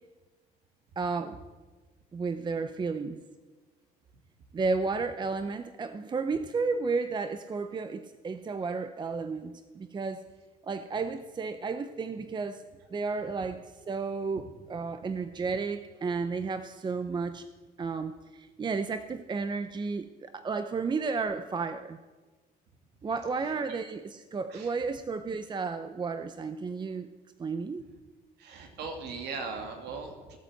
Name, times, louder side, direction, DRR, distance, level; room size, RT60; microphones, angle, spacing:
voice 1, 1.0-1.4 2.1-3.2 4.5-10.3 10.6-12.6 12.9-17.5 17.8-22.0 23.0-27.1 27.4-27.9, right 4 dB, 25° right, 11 dB, 0.7 m, -32 dB
voice 2, 28.4-30.4, right 4 dB, 80° right, 4 dB, 2.4 m, -39 dB
16.5 x 8.9 x 7.9 m, 1.3 s
cardioid pair, 110°, 17 cm